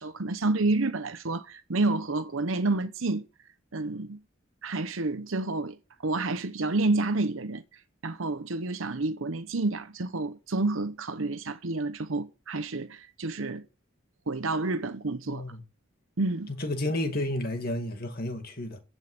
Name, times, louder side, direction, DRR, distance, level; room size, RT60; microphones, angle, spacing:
voice 1, 0.0-3.3 3.7-4.2 4.6-5.8 6.0-7.6 8.0-13.7 14.3-15.4 16.2-16.5, right 2 dB, 80° right, 0.9 m, -29 dB
voice 2, 15.3-15.6 16.5-18.8, left 1 dB, 45° left, 2.3 m, -31 dB
15.5 x 6.4 x 7.8 m
head